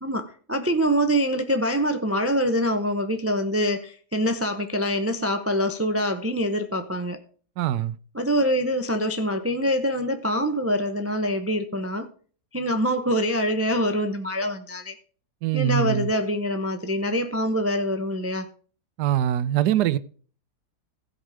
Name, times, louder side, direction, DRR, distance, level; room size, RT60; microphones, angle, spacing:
voice 1, 0.0-7.2 8.1-12.1 12.5-14.9 15.5-18.5, equal, 20° right, 0.3 m, -25 dB
voice 2, 7.6-8.0 15.4-16.1 19.0-20.0, right 11 dB, 85° right, 1.2 m, -23 dB
15.5 x 5.4 x 4.9 m
omnidirectional pair, 1.7 m